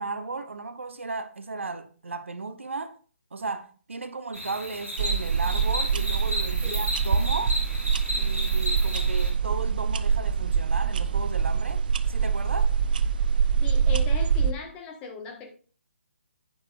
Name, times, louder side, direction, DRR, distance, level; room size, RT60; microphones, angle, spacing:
voice 1, 0.0-3.0 3.3-7.6 8.1-12.7, right 3 dB, 65° right, 0.9 m, -35 dB
sound 1, 4.3-9.3, equal, 90° right, 3.7 m, -33 dB
sound 2, 5.0-14.5, right 6 dB, 40° right, 0.6 m, -24 dB
voice 2, 13.6-15.5, left 4 dB, 15° left, 1.5 m, -37 dB
10.5 x 8.6 x 2.5 m
figure-of-eight pair, 140°, 7 cm